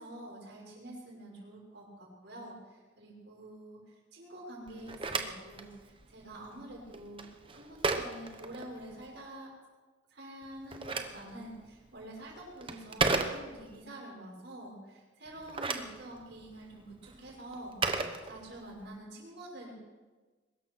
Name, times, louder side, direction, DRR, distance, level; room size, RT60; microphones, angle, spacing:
voice 1, 0.0-3.8 4.1-7.2 7.5-9.5 10.1-19.7, right 1 dB, 65° right, -2 dB, 5.7 m, -47 dB
Telephone, 4.7-9.2 10.4-13.8 15.3-18.9, right 3 dB, 25° right, 1.0 m, -36 dB
22.5 x 13.0 x 4.6 m, 1.3 s
head